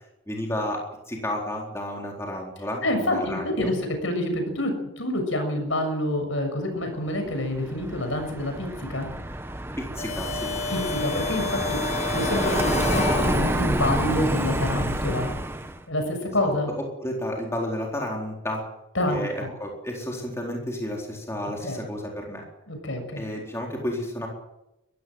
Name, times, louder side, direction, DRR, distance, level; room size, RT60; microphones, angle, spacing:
voice 1, 0.3-3.7 9.8-10.5 16.4-16.5 16.8-18.6 19.1-22.4 23.2-24.3, left 1 dB, 15° left, -1 dB, 4.1 m, -32 dB
voice 2, 2.8-9.1 10.7-15.3 15.9-16.7 18.9-19.5 21.6-21.8 22.7-23.2, left 1 dB, 70° left, 5 dB, 6.9 m, -27 dB
Car passing by, 7.3-15.8, right 1 dB, 10° right, 1.3 m, -28 dB
sound 1, 10.0-13.9, left 4 dB, 30° left, 1.4 m, -31 dB
22.5 x 15.5 x 7.9 m, 0.91 s
head